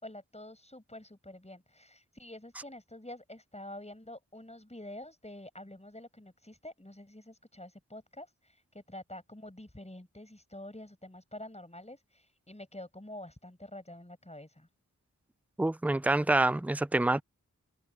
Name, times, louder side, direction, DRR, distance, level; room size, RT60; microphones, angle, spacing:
voice 1, 0.0-14.7, left 1 dB, 20° left, 6.2 m, -47 dB
voice 2, 15.6-17.2, right 2 dB, 5° right, 0.5 m, -26 dB
wide cardioid pair, 40°, 32 cm